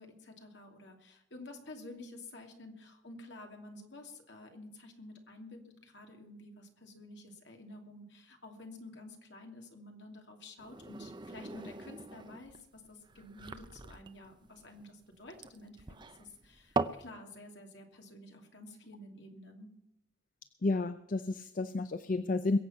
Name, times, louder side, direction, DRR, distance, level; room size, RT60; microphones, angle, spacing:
voice 1, 0.0-15.9 16.2-19.7, left 2 dB, 65° left, 3 dB, 2.7 m, -51 dB
sound 1, 10.6-17.1, right 3 dB, 25° right, 0.6 m, -40 dB
voice 2, 20.6-22.6, left 3 dB, 45° left, 11 dB, 0.6 m, -31 dB
22.0 x 8.1 x 5.7 m, 0.84 s
head